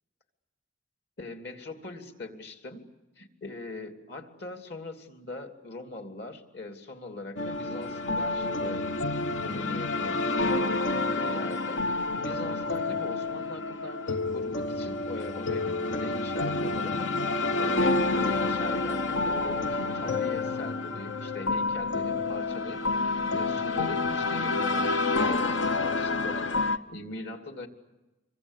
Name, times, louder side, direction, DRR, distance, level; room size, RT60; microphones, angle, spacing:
voice 1, 1.2-2.9 3.2-8.9 9.4-10.2 11.2-27.7, left 2 dB, 60° left, 4 dB, 2.9 m, -41 dB
sound 1, 7.4-26.8, left 3 dB, 80° left, 1.0 m, -28 dB
27.0 x 23.5 x 8.3 m, 1.1 s
head